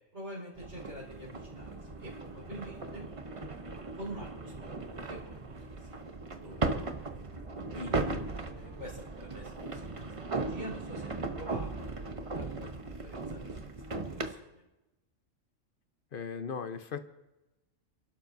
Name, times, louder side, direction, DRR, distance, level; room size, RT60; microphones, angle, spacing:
voice 1, 0.1-1.7 2.0-3.1 3.9-4.7 5.1-5.4 5.6-6.0 6.4-7.2 7.7-8.1 8.5-13.5 14.1-14.6, equal, 55° right, -7 dB, 4.8 m, -46 dB
sound 1, 0.6-14.3, right 3 dB, 30° right, 0.8 m, -37 dB
sound 2, 1.8-11.7, right 1 dB, 90° right, 2.2 m, -57 dB
voice 2, 16.1-17.1, left 6 dB, 50° left, 9 dB, 1.0 m, -38 dB
28.0 x 12.0 x 2.7 m, 1.0 s
omnidirectional pair, 1.3 m